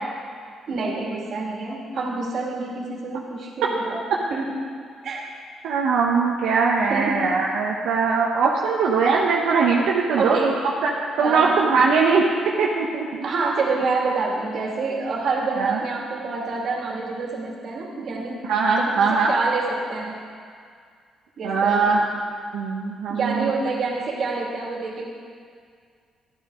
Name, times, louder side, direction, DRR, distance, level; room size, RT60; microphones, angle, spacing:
voice 1, 0.7-4.0 4.3-4.5 5.0-5.3 6.9-7.2 10.2-10.5 11.2-11.5 13.2-18.4 18.8-20.2 21.4-21.9 23.1-25.1, right 3 dB, 60° right, -2 dB, 2.3 m, -27 dB
voice 2, 5.6-10.5 10.8-10.9 11.2-12.2 12.6-13.2 15.6-15.8 18.5-19.3 21.4-22.0 22.5-23.5, right 5 dB, 90° right, -3 dB, 1.0 m, -21 dB
12.0 x 12.0 x 3.8 m, 2.1 s
cardioid pair, 90°, 0 cm